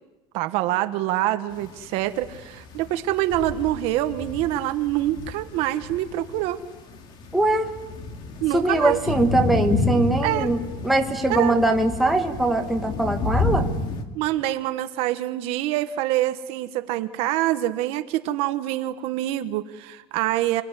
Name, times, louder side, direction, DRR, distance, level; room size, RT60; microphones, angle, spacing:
voice 1, 0.3-6.6 8.4-9.0 10.2-10.5 11.3-11.5 14.1-20.6, right 14 dB, 45° right, 10 dB, 1.3 m, -25 dB
sound 1, 1.6-14.0, left 3 dB, 35° left, 2.2 m, -30 dB
voice 2, 7.3-7.7 8.5-13.7, right 2 dB, ahead, 2 dB, 1.3 m, -22 dB
28.0 x 19.5 x 10.0 m, 1.1 s
cardioid pair, 180°, 14 cm